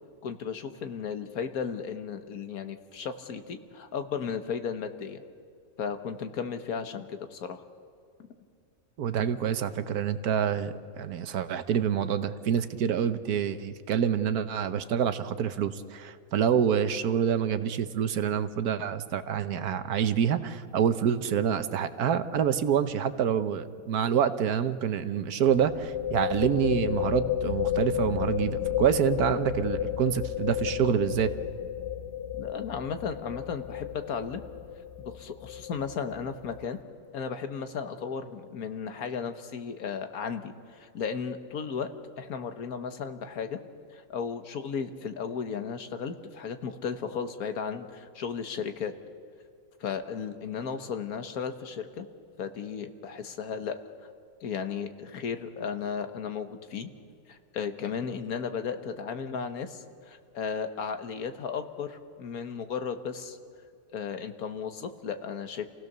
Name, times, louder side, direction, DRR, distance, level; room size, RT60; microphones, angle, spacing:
voice 1, 0.2-5.2 5.8-7.6 8.2-8.3 32.4-34.4 35.0-36.8 37.1-41.9 42.2-43.6 43.9-48.9 49.8-52.1 52.4-53.8 54.4-56.9 57.3-63.4 63.9-65.7, left 6 dB, 75° left, 8 dB, 1.6 m, -35 dB
voice 2, 9.0-31.3, right 8 dB, 80° right, 11 dB, 1.4 m, -27 dB
sound 1, 22.3-22.6 22.9-23.0 25.4-36.8, left 10 dB, 55° left, 0.9 m, -32 dB
28.5 x 16.5 x 6.7 m, 2.3 s
omnidirectional pair, 1.6 m